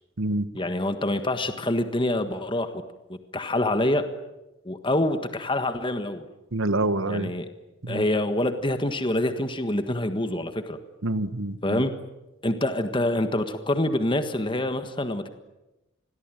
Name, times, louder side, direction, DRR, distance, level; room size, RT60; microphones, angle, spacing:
voice 1, 0.5-2.8 3.1-4.0 4.6-6.3 7.1-7.5 7.9-10.8 11.6-11.9 12.4-15.3, left 1 dB, 25° left, 8 dB, 1.5 m, -26 dB
voice 2, 6.5-7.3 7.8-8.0 11.0-11.8, right 2 dB, 85° right, 13 dB, 1.4 m, -26 dB
27.5 x 21.5 x 9.2 m, 1.0 s
head